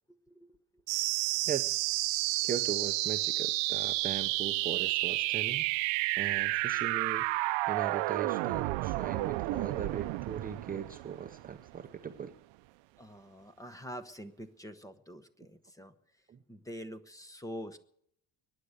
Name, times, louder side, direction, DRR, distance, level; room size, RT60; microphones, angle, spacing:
voice 1, 0.3-0.6 13.0-17.8, equal, 10° left, 11 dB, 0.9 m, -46 dB
sound 1, 0.9-11.9, right 21 dB, 85° right, 0.7 m, -31 dB
voice 2, 1.5-1.8 2.4-7.2 7.7-12.4 16.3-16.4, right 7 dB, 20° right, 7 dB, 0.7 m, -39 dB
22.0 x 9.9 x 6.5 m, 0.69 s
cardioid pair, 160°, 43 cm